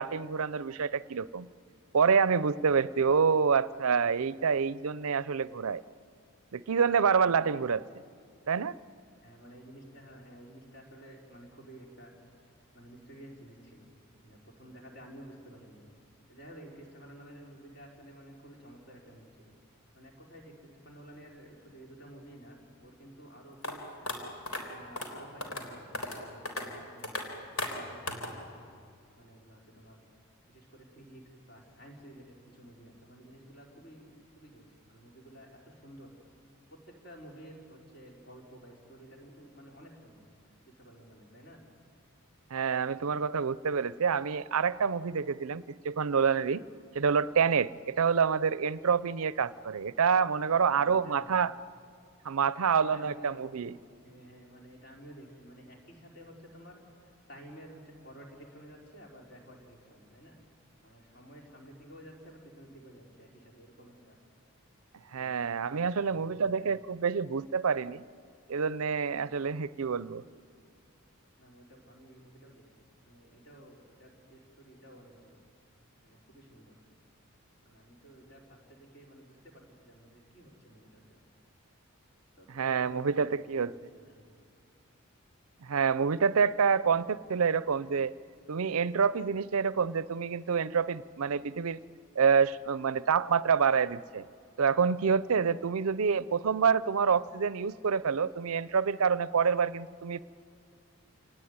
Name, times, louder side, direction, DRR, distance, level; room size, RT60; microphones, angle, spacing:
voice 1, 0.0-1.5 1.9-5.8 6.5-7.8 8.5-8.8 42.5-46.6 46.9-51.5 52.2-53.8 65.1-68.0 68.5-70.2 82.5-83.7 85.6-88.1 88.5-91.8 92.2-94.2 94.6-100.2, right 6 dB, 80° right, 18 dB, 0.5 m, -27 dB
voice 2, 9.2-12.1 12.7-13.9 14.2-15.8 16.3-19.5 19.9-20.5 20.8-24.3 24.7-27.2 27.4-28.6 29.2-30.0 30.5-32.3 32.5-34.1 34.4-36.1 37.0-40.2 40.8-41.6 50.5-51.4 52.8-53.4 54.0-56.8 57.3-60.4 60.8-64.2 65.8-66.8 71.4-72.6 73.0-75.3 76.0-76.7 77.6-79.5 79.8-81.0 82.4-83.0 83.6-84.1, right 1 dB, 45° left, 0 dB, 4.5 m, -52 dB
sound 1, 23.6-23.7 24.1-24.2 24.5-24.6 25.0-25.1 25.4-25.6 25.9-26.2 26.5-26.6 27.0-27.2 27.6-27.7 28.1-28.3, left 2 dB, 75° left, 3.8 m, -34 dB
27.5 x 19.0 x 9.6 m, 2.3 s
head